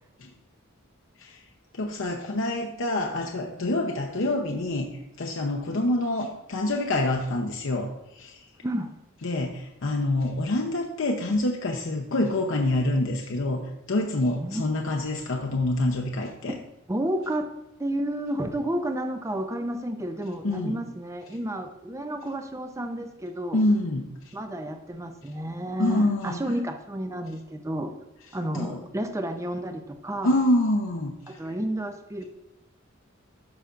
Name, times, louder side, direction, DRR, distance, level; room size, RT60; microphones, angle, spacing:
voice 1, 1.7-8.5 9.2-13.6 13.9-16.5 20.4-20.8 23.5-24.1 25.8-26.4 28.5-28.8 30.2-31.5, left 1 dB, 70° left, 1 dB, 0.7 m, -26 dB
voice 2, 16.9-17.5 17.8-23.6 24.3-27.9 28.3-30.4 31.3-32.3, right 1 dB, 15° right, 6 dB, 0.5 m, -31 dB
12.0 x 5.7 x 2.5 m, 0.89 s
head